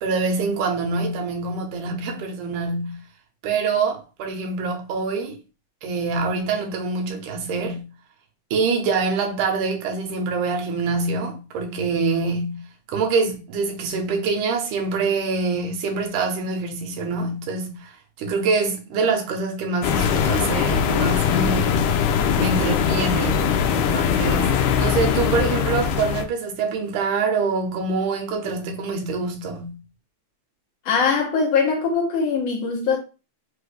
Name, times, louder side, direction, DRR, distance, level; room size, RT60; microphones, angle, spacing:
voice 1, 0.0-3.0 3.4-5.4 5.8-7.9 8.5-12.6 12.9-17.8 18.2-22.0 22.4-29.8, right 4 dB, 85° right, 2.4 m, -25 dB
sound 1, 19.8-26.3, left 7 dB, 90° left, 2.1 m, -21 dB
voice 2, 30.9-33.0, left 5 dB, 65° left, 1.8 m, -21 dB
5.5 x 2.4 x 3.2 m
omnidirectional pair, 3.5 m